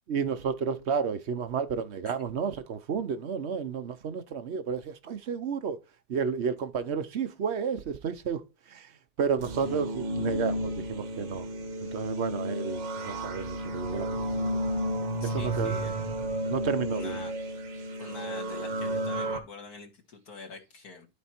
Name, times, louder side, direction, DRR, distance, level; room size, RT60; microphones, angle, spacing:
voice 1, 0.1-5.8 6.1-8.4 8.7-8.9 9.2-11.5 11.9-14.1 14.4-14.5 15.2-15.7 16.5-17.2, right 6 dB, 50° right, 0.8 m, -31 dB
sound 1, 9.4-19.4, right 1 dB, 80° right, 2.0 m, -32 dB
voice 2, 15.2-16.0 16.9-17.3 18.0-21.1, left 4 dB, 60° left, 2.0 m, -45 dB
12.0 x 4.5 x 4.4 m
omnidirectional pair, 1.9 m